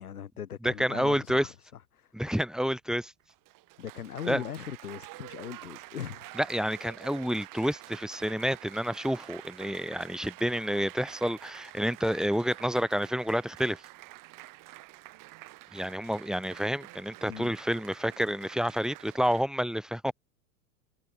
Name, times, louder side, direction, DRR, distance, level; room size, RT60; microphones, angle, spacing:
voice 1, 0.0-1.7 1.9-2.4 3.8-6.3 17.3-17.5, left 9 dB, 80° left, 7.3 m, -40 dB
voice 2, 0.6-1.5 2.1-3.1 4.3-4.4 6.4-13.8 15.7-20.1, equal, ahead, 1.9 m, -29 dB
Applause, 3.2-19.4, right 19 dB, 45° right, 6.6 m, -48 dB
hypercardioid pair, 90°, 44 cm